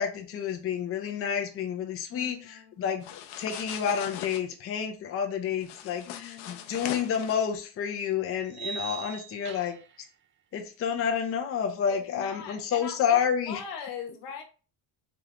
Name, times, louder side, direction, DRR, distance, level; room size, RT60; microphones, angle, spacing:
voice 1, 0.0-9.7 10.5-13.6, left 7 dB, 35° left, 0.6 m, -29 dB
voice 2, 2.1-2.9 6.0-6.7 11.9-14.4, left 7 dB, 90° left, 1.2 m, -41 dB
sound 1, 3.0-4.4 5.6-7.4, left 10 dB, 70° left, 0.7 m, -40 dB
sound 2, 6.9-7.0 8.5-10.0, right 7 dB, 30° right, 0.4 m, -39 dB
3.5 x 3.1 x 3.7 m
cardioid pair, 145°, 41 cm